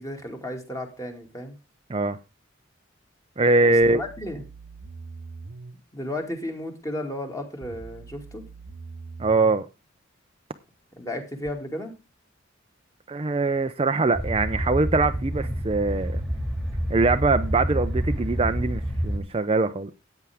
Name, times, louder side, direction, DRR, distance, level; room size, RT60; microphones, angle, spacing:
voice 1, 0.0-1.6 3.6-4.4 5.9-8.4 11.0-11.9, left 1 dB, 15° left, 2.4 m, -34 dB
voice 2, 3.4-4.0 9.2-9.7 13.1-16.2 16.9-19.9, right 3 dB, 30° right, 0.6 m, -22 dB
sound 1, 3.8-5.8 7.6-9.6 11.5-11.6, right 4 dB, 70° right, 0.8 m, -42 dB
sound 2, 14.1-19.2, equal, ahead, 2.1 m, -28 dB
14.0 x 9.0 x 3.5 m
head